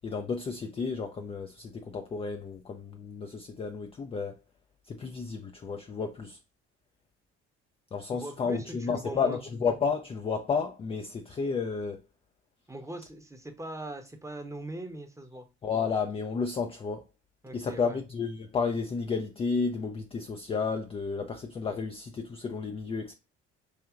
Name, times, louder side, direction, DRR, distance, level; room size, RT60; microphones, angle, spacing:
voice 1, 0.0-4.3 4.9-6.4 7.9-12.0 15.6-17.0 17.5-23.1, left 5 dB, 15° left, 0.3 m, -32 dB
voice 2, 8.1-9.4 12.7-15.5 17.4-18.0, right 1 dB, 10° right, 0.8 m, -41 dB
4.6 x 2.7 x 2.4 m
figure-of-eight pair, 50°, 36 cm